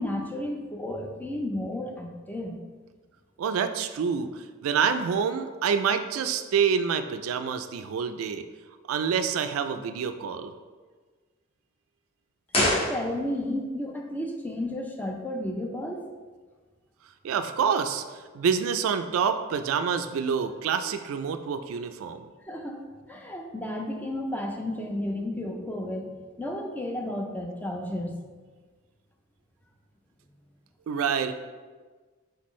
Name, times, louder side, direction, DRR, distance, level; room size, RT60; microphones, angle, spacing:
voice 1, 0.0-2.6 12.6-16.0 22.5-22.8 23.1-26.1 26.4-28.2, left 1 dB, 10° left, 1 dB, 0.4 m, -32 dB
voice 2, 3.4-8.4 8.9-10.5 17.2-22.3 30.9-31.3, right 6 dB, 80° right, 9 dB, 0.3 m, -27 dB
sound 1, 12.5-13.6 13.8-13.9, left 1 dB, 30° left, 0.9 m, -27 dB
4.3 x 3.8 x 3.1 m, 1.4 s
head